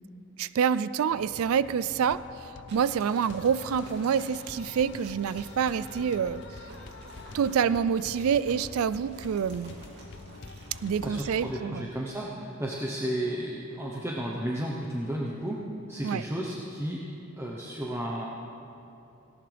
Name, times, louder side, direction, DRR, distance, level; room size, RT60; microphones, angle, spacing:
voice 1, 0.4-2.2 2.7-6.4 7.3-9.8 10.8-11.9 16.0-16.2, right 7 dB, 80° right, 16 dB, 0.3 m, -27 dB
sound 1, 1.1-11.5, left 3 dB, 55° left, 0.6 m, -46 dB
sound 2, 2.7-11.5, right 1 dB, 50° right, 2.5 m, -52 dB
voice 2, 11.0-15.6 15.9-17.0 17.4-18.3, right 1 dB, 10° right, -4 dB, 0.9 m, -33 dB
17.5 x 17.5 x 3.4 m, 2.8 s
head